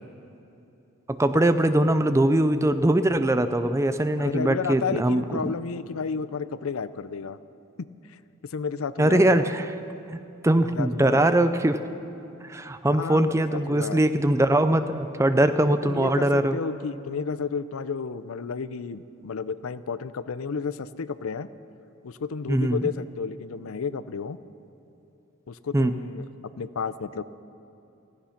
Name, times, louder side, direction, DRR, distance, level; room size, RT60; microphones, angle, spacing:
voice 1, 1.1-5.5 9.0-9.7 10.1-11.8 12.5-16.6 22.5-22.8 25.7-25.9, right 1 dB, 15° right, 10 dB, 0.4 m, -22 dB
voice 2, 4.2-7.4 7.8-8.2 8.5-9.5 10.6-11.3 13.0-14.0 15.6-21.5 22.0-24.4 25.5-26.3 26.6-27.2, left 5 dB, 70° left, 15 dB, 0.5 m, -32 dB
15.5 x 15.0 x 5.8 m, 2.8 s
head